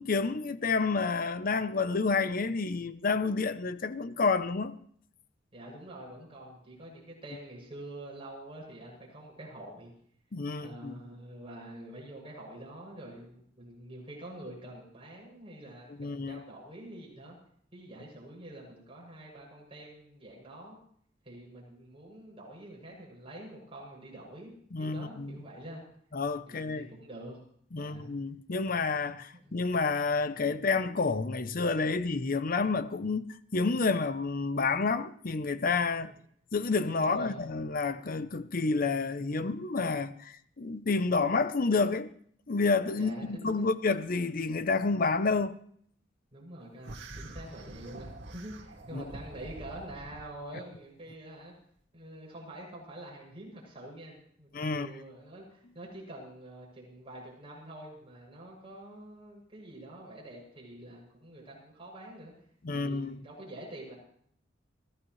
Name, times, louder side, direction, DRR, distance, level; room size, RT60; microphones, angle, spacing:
voice 1, 0.0-4.7 10.3-11.0 16.0-16.4 24.7-25.4 26.1-26.9 27.7-36.1 36.5-42.1 42.5-45.6 48.9-49.0 54.5-54.9 62.6-63.2, left 4 dB, 50° left, 0.7 m, -29 dB
voice 2, 5.5-9.9 10.5-17.4 17.7-20.8 21.2-24.5 24.8-25.8 26.5-27.4 27.8-28.1 29.3-29.5 36.0-36.2 37.0-37.5 43.0-43.7 46.3-51.5 51.9-62.3 62.7-63.9, right 1 dB, 30° right, 7.2 m, -46 dB
sound 1, 46.8-50.3, right 1 dB, 70° right, 2.2 m, -45 dB
23.5 x 16.0 x 3.2 m
head